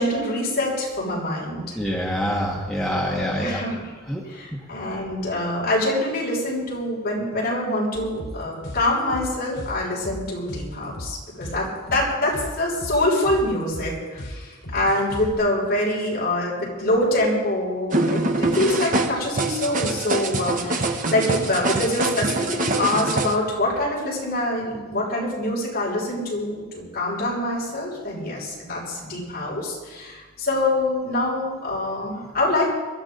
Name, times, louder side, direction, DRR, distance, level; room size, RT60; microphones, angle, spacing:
voice 1, 0.0-1.8 3.0-3.9 4.3-32.8, left 1 dB, 50° left, -5 dB, 6.3 m, -25 dB
voice 2, 1.7-3.6 4.1-4.2, equal, ahead, -4 dB, 1.7 m, -25 dB
sound 1, 7.9-15.3, equal, 65° left, 4.3 m, -36 dB
sound 2, 17.9-23.3, right 2 dB, 40° right, 1.1 m, -24 dB
23.0 x 13.0 x 3.9 m, 1.4 s
head